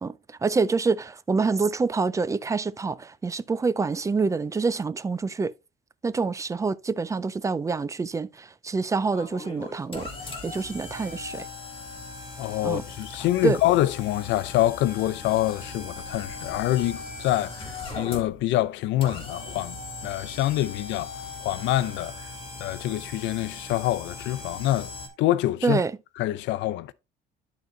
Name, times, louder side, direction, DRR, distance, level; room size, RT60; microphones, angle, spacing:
voice 1, 0.4-5.5 6.0-10.1 10.4-11.5 12.6-12.8 13.4-13.6 25.6-25.9, right 4 dB, 15° right, 0.4 m, -26 dB
sound 1, 9.1-25.1, left 3 dB, 30° left, 2.5 m, -39 dB
voice 2, 12.4-19.8 20.0-21.1 21.4-22.2 22.6-24.9 25.2-25.8 26.2-26.9, left 14 dB, 70° left, 0.6 m, -26 dB
12.0 x 4.0 x 3.1 m
cardioid pair, 125°, 19 cm